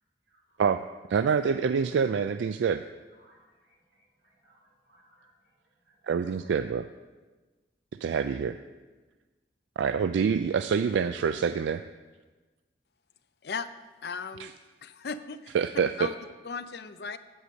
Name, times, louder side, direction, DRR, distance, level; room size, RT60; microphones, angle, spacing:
voice 1, 0.3-0.6 3.1-5.5 5.8-6.4, right 1 dB, 70° right, -2 dB, 2.7 m, -64 dB
voice 2, 1.1-2.8 6.0-6.9 8.0-8.6 9.8-11.8 14.4-14.5 15.5-16.1, right 6 dB, 85° right, 10 dB, 0.3 m, -26 dB
voice 3, 14.0-14.5 14.8-15.5 16.0-16.1 16.4-17.2, left 5 dB, 60° left, 12 dB, 0.5 m, -36 dB
8.2 x 7.9 x 6.4 m, 1.3 s
head